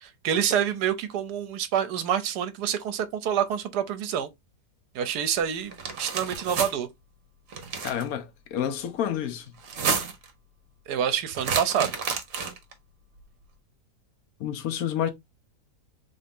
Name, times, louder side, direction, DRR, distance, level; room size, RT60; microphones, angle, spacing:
voice 1, 0.0-4.3 4.9-6.9 10.9-11.9, right 9 dB, 75° right, 1.2 m, -27 dB
sound 1, 5.7-6.7 7.5-8.0 9.6-10.3 11.3-12.7, right 5 dB, 55° right, 1.2 m, -30 dB
voice 2, 7.8-9.5 14.4-15.1, left 10 dB, 65° left, 1.1 m, -29 dB
3.8 x 2.7 x 3.5 m
omnidirectional pair, 1.8 m